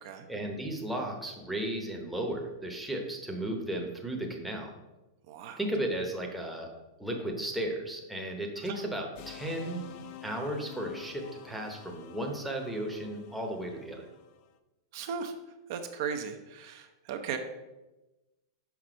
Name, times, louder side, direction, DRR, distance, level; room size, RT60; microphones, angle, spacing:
voice 1, 0.3-4.7 5.6-6.7 7.0-9.8 10.2-14.1, right 1 dB, ahead, 0 dB, 0.8 m, -35 dB
voice 2, 5.3-5.6 8.6-8.8 14.9-15.3 15.7-17.4, right 7 dB, 50° right, 6 dB, 0.6 m, -37 dB
sound 1, 9.2-14.5, left 9 dB, 40° left, 0.5 m, -49 dB
5.9 x 4.2 x 5.0 m, 1.1 s
supercardioid pair, 150°, 2 cm